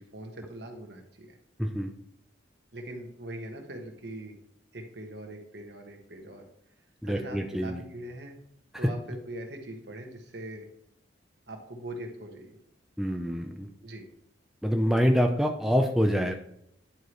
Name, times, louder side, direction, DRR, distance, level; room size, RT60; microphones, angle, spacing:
voice 1, 0.0-1.3 2.7-4.3 4.7-6.4 7.0-8.3 8.8-10.7 11.5-12.6 13.8-14.0, right 1 dB, 60° right, 3 dB, 1.4 m, -41 dB
voice 2, 1.6-1.9 7.0-7.8 13.0-13.7 14.6-16.3, equal, ahead, 2 dB, 0.5 m, -26 dB
10.5 x 4.7 x 3.2 m, 0.74 s
head